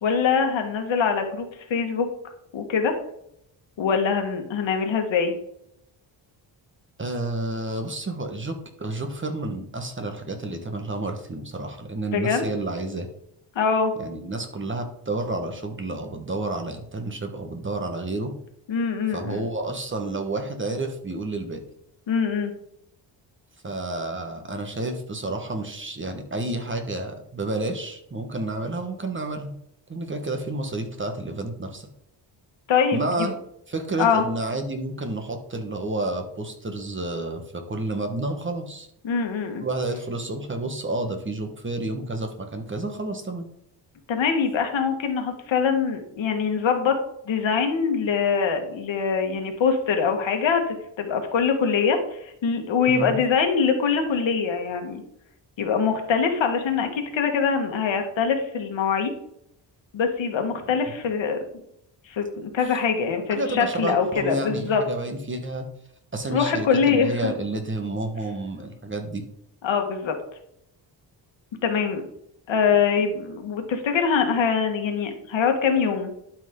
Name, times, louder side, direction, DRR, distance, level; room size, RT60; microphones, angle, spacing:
voice 1, 0.0-2.1 2.5-2.9 3.8-5.3 12.1-12.5 13.6-13.9 18.7-19.5 22.1-22.5 32.7-33.3 34.0-34.2 39.0-39.6 44.1-47.0 47.3-55.0 55.6-59.1 59.9-61.4 62.1-64.8 66.3-67.3 69.6-70.2 71.6-72.1 72.5-76.1, left 6 dB, 70° left, 5 dB, 1.8 m, -23 dB
voice 2, 7.0-13.1 14.0-18.3 19.1-21.6 23.6-29.5 29.9-31.9 32.9-33.3 33.7-38.9 39.6-43.5 52.9-53.2 63.3-65.7 66.1-69.3, right 2 dB, 25° right, 5 dB, 1.3 m, -30 dB
12.0 x 5.5 x 3.8 m, 0.74 s
cardioid pair, 125°, 47 cm